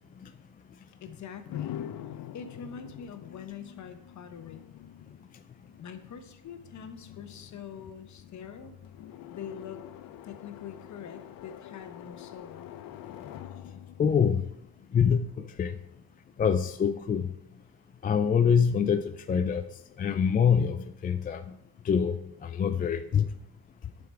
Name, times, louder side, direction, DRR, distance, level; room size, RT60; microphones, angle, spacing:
voice 1, 1.0-1.8 2.1-4.7 5.8-8.7 9.3-9.8 10.2-12.7, left 7 dB, 50° left, 8 dB, 1.1 m, -44 dB
sound 1, 1.5-15.3, left 11 dB, 65° left, 0.7 m, -45 dB
voice 2, 14.0-14.4 14.9-15.7 16.4-17.3 18.0-19.6 20.0-21.4 21.8-23.3, left 7 dB, 25° left, 8 dB, 0.3 m, -25 dB
8.2 x 6.9 x 4.5 m, 0.79 s
cardioid pair, 115°, 37 cm